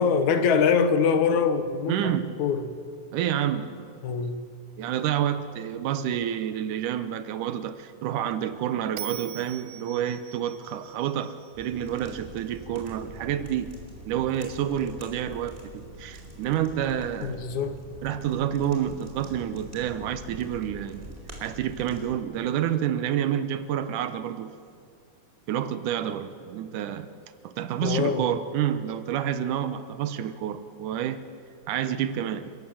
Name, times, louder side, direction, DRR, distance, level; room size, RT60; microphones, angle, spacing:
voice 1, 0.0-2.7 4.0-4.4 17.2-17.8 27.8-28.3, left 6 dB, 70° left, 9 dB, 2.6 m, -24 dB
voice 2, 1.9-2.4 3.1-4.0 4.8-13.8 14.1-17.5 18.0-21.1 21.4-24.6 25.5-27.1 27.4-31.2 31.7-32.5, right 10 dB, 85° right, 11 dB, 2.4 m, -29 dB
Bell, 9.0-12.2, right 11 dB, 65° right, 2.0 m, -42 dB
sound 1, 11.5-22.1, right 1 dB, 15° right, 4.4 m, -45 dB
28.5 x 17.5 x 7.6 m, 2.3 s
omnidirectional pair, 3.6 m